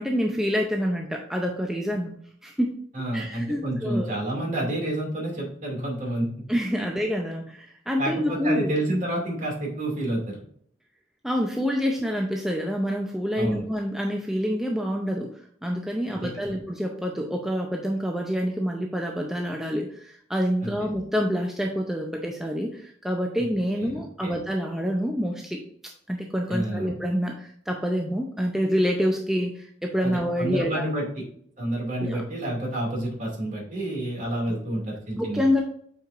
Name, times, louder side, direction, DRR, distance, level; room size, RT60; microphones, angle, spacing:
voice 1, 0.0-2.1 2.4-2.7 3.1-4.2 6.5-8.7 11.2-15.3 15.6-25.6 26.1-30.8 32.0-32.2 34.5-34.6 35.2-35.6, equal, 5° right, 0 dB, 0.6 m, -27 dB
voice 2, 2.9-6.3 6.8-6.9 8.0-10.4 13.4-13.6 16.1-16.6 20.6-20.9 23.8-24.4 26.5-27.0 30.0-31.2 31.6-35.5, right 1 dB, 45° right, -1 dB, 2.4 m, -29 dB
8.2 x 4.7 x 2.5 m, 0.62 s
head